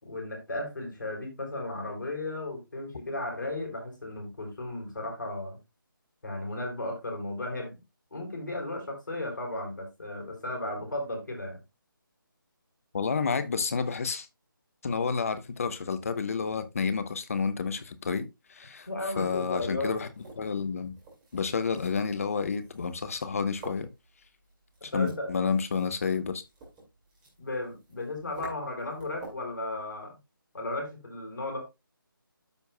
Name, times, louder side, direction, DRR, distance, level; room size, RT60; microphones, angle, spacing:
voice 1, 0.0-5.6 6.2-7.8 8.1-11.6 18.9-19.9 24.9-25.3 27.4-30.2 30.5-31.6, left 2 dB, 60° left, 4.0 m, -35 dB
voice 2, 12.9-14.3 14.8-18.9 19.2-20.1 20.4-20.9 21.3-23.9 24.8-26.4, left 5 dB, 40° left, 1.0 m, -30 dB
sound 1, 19.5-29.6, right 2 dB, 10° right, 2.3 m, -51 dB
13.5 x 4.5 x 2.3 m
figure-of-eight pair, 155°, 12 cm